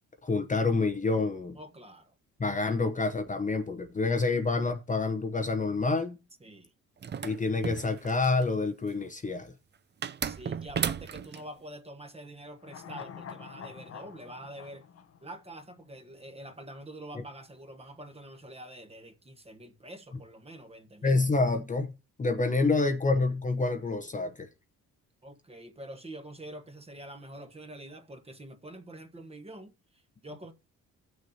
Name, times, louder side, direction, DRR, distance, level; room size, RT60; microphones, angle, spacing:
voice 1, 0.2-1.6 2.4-6.2 7.2-9.5 21.0-21.9 22.2-24.5, left 3 dB, 25° left, 0.8 m, -27 dB
voice 2, 1.5-2.1 6.4-6.7 10.2-14.8 15.2-21.2 25.2-30.5, right 1 dB, 20° right, 1.3 m, -46 dB
sound 1, 7.0-8.4 10.0-11.4, right 7 dB, 35° right, 0.6 m, -34 dB
sound 2, 12.6-16.0 16.3-16.4, left 7 dB, 55° left, 0.9 m, -46 dB
16.5 x 6.3 x 2.8 m
cardioid pair, 90°, 30 cm